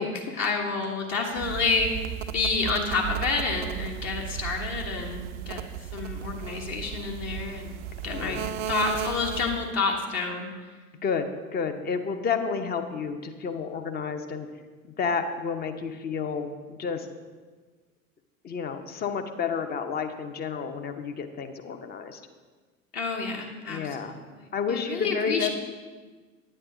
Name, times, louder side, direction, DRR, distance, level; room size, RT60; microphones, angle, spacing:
voice 1, 0.0-2.1 2.3-5.6 5.9-10.5 22.9-24.2 24.7-25.5, left 4 dB, 40° left, 1 dB, 1.3 m, -29 dB
sound 1, 1.4-9.7, right 9 dB, 60° right, 0.5 m, -35 dB
voice 2, 8.1-8.5 11.0-11.3 11.5-14.5 15.0-17.1 18.4-22.2 23.7-24.2 24.5-25.5, left 6 dB, 25° left, 7 dB, 0.8 m, -30 dB
9.4 x 8.8 x 3.9 m, 1.4 s
figure-of-eight pair, 75°, 41 cm